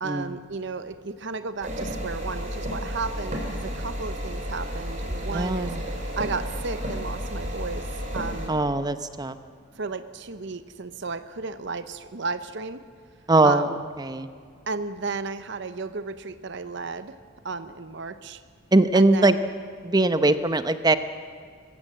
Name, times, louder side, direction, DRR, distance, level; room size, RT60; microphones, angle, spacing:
voice 1, 0.0-5.8 6.2-7.9 8.1-8.5 9.8-12.8 13.4-13.8 14.7-17.2 17.4-18.4 18.9-19.4, right 4 dB, 60° right, 12 dB, 0.8 m, -33 dB
sound 1, 1.6-8.5, equal, 40° right, 4.0 m, -32 dB
voice 2, 5.3-5.8 8.5-9.4 13.3-13.7 14.0-14.3 18.7-19.4 19.8-21.0, right 2 dB, 20° right, 11 dB, 0.8 m, -21 dB
22.5 x 16.0 x 7.7 m, 2.1 s
head